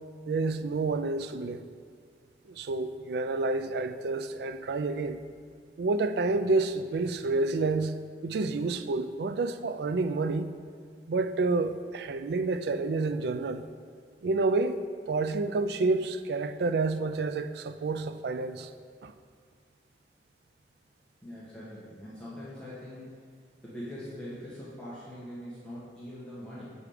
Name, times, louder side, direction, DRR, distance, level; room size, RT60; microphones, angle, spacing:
voice 1, 0.3-1.6 2.5-5.2 5.8-8.0 8.2-10.5 11.1-13.6 14.2-14.8 15.1-18.7 19.0-19.1, right 3 dB, 65° right, 9 dB, 0.4 m, -29 dB
voice 2, 21.2-23.1 23.6-26.7, equal, 5° left, -10 dB, 1.3 m, -42 dB
7.2 x 4.9 x 4.9 m, 2.1 s
head